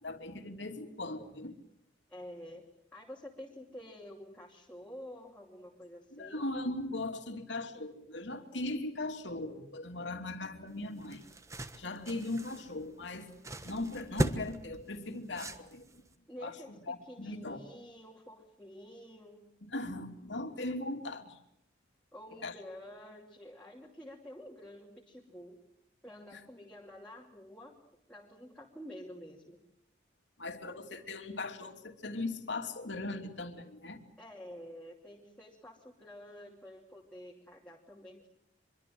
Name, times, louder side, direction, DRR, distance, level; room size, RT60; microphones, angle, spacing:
voice 1, 0.0-1.5 6.1-11.2 11.8-13.3 13.6-15.8 16.4-17.6 19.7-21.4 22.4-22.5 26.3-26.4 30.4-34.0, left 2 dB, 75° left, 5 dB, 2.9 m, -39 dB
voice 2, 2.1-6.4 16.3-19.5 22.1-25.6 26.0-27.8 28.1-29.6 34.2-38.3, left 1 dB, 5° left, -2 dB, 2.7 m, -49 dB
sound 1, 10.7-16.1, right 1 dB, 15° right, 1.3 m, -39 dB
26.0 x 23.5 x 7.8 m, 0.77 s
head